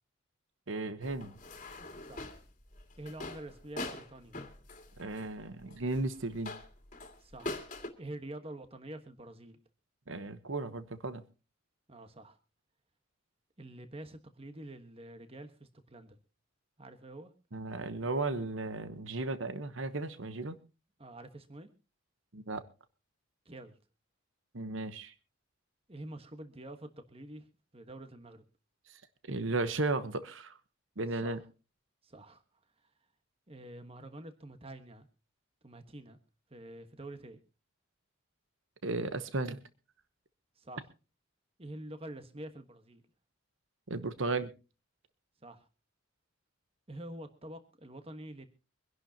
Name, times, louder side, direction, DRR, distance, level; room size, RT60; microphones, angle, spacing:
voice 1, 0.7-1.3 5.0-6.5 10.1-11.2 17.5-20.6 22.3-22.6 24.5-25.1 29.3-30.5 31.0-31.4 38.8-39.6 43.9-44.5, right 3 dB, 70° right, 12 dB, 1.1 m, -35 dB
sound 1, 1.0-7.9, left 2 dB, 35° left, 2.3 m, -43 dB
voice 2, 3.0-4.4 7.2-7.6 8.0-9.6 11.9-12.4 13.6-16.2 16.8-17.3 21.0-21.7 23.4-23.8 25.9-27.5 27.7-28.4 31.2-31.4 32.0-32.4 33.5-35.1 35.6-36.2 36.5-37.4 40.6-40.9 41.6-43.0 45.4-45.7 46.9-48.5, right 1 dB, 30° right, 8 dB, 1.3 m, -47 dB
24.5 x 11.0 x 2.9 m, 0.31 s
head